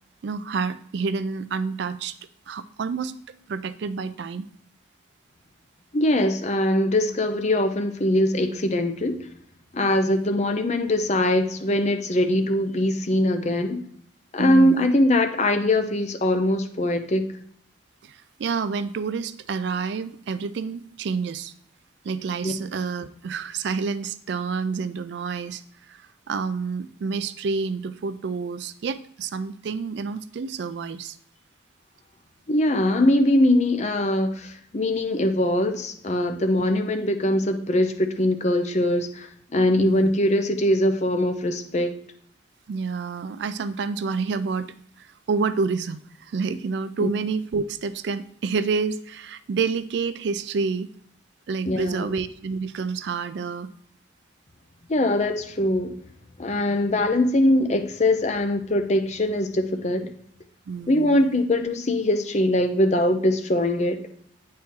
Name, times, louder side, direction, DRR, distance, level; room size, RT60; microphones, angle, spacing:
voice 1, 0.2-2.2 2.5-3.1 3.5-4.5 14.4-14.8 18.0-21.5 22.0-25.6 25.9-31.2 39.8-40.1 42.7-50.9 51.5-53.7 60.7-61.2, right 5 dB, 60° right, 14 dB, 0.3 m, -28 dB
voice 2, 5.9-9.2 9.7-13.8 14.3-17.2 22.4-22.5 32.5-42.0 47.0-47.1 51.7-52.1 54.9-56.0 56.4-60.1 60.9-64.0, left 1 dB, 35° left, 7 dB, 0.6 m, -22 dB
8.6 x 4.3 x 3.7 m, 0.66 s
head